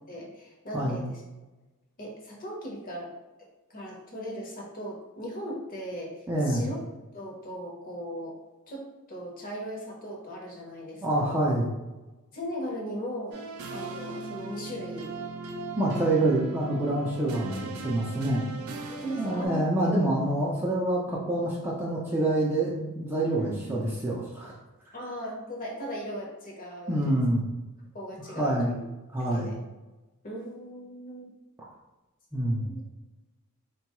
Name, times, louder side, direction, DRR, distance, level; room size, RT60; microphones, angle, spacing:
voice 1, 0.1-1.2 2.0-3.1 3.4-6.8 7.1-8.4 8.7-11.4 12.3-15.2 18.9-19.7 23.4-23.9 24.9-27.0 27.9-28.8 29.2-29.6 30.2-31.4 32.6-32.8, equal, 40° left, -2 dB, 0.8 m, -38 dB
voice 2, 6.3-6.6 11.0-11.7 15.8-18.5 19.2-24.5 26.9-27.5 28.3-28.7 29.1-29.5 32.3-32.6, right 1 dB, 10° right, -4 dB, 0.4 m, -26 dB
sound 1, 13.3-19.5, right 3 dB, 75° right, 0.4 m, -38 dB
3.8 x 2.2 x 2.9 m, 1.1 s
head